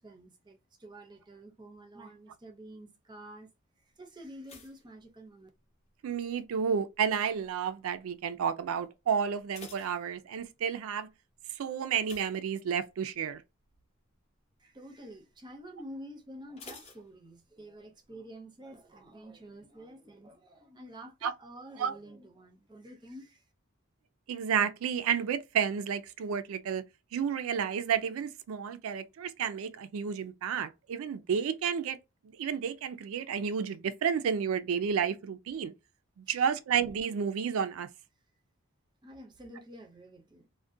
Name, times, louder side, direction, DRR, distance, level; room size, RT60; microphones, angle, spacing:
voice 1, 0.0-3.5 4.0-5.5 14.6-23.4 36.3-36.4 39.0-40.5, right 1 dB, 20° right, 0.5 m, -49 dB
sound 1, 4.4-5.9 6.1-6.7 7.3-7.6 7.9-8.0 8.4-8.5 9.2-10.7 12.0-13.1 13.5-13.8 14.1-14.2 16.6-17.8 18.0-18.1, left 3 dB, 30° left, 0.5 m, -52 dB
voice 2, 6.0-11.1 11.6-13.4 21.2-21.3 21.8-21.9 24.3-26.8 27.1-32.0 32.4-35.7 36.2-37.9, right 7 dB, 80° right, 0.3 m, -31 dB
2.4 x 2.1 x 2.5 m
head